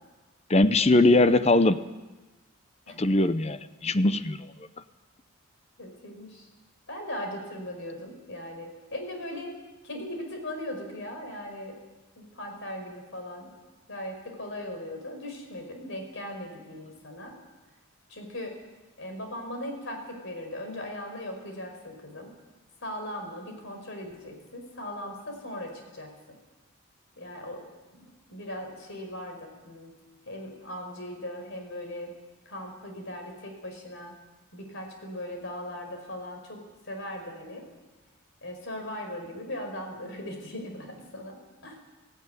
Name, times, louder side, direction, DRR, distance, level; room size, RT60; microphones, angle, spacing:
voice 1, 0.5-1.8 3.0-4.4, left 2 dB, 30° left, 12 dB, 0.6 m, -21 dB
voice 2, 5.8-6.4 6.9-9.5 9.8-11.8 12.2-13.5 13.9-17.3 18.1-18.5 19.0-22.3 22.8-26.1 27.2-27.7 28.3-29.9 30.3-32.1 32.4-34.1 34.5-36.6 36.9-37.7 38.4-41.4 41.6-41.8, left 1 dB, 60° left, 4 dB, 5.0 m, -38 dB
17.5 x 16.5 x 9.4 m, 1.1 s
head